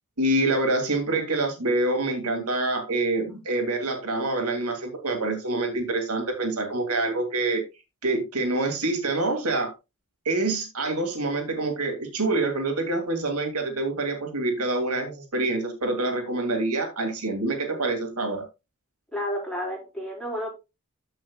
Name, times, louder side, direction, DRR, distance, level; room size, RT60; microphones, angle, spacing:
voice 1, 0.2-7.6 8.0-9.7 10.3-18.5, right 2 dB, 80° right, 4 dB, 2.4 m, -26 dB
voice 2, 19.1-20.5, equal, 5° left, -2 dB, 4.3 m, -31 dB
14.0 x 5.7 x 2.3 m, 0.25 s
head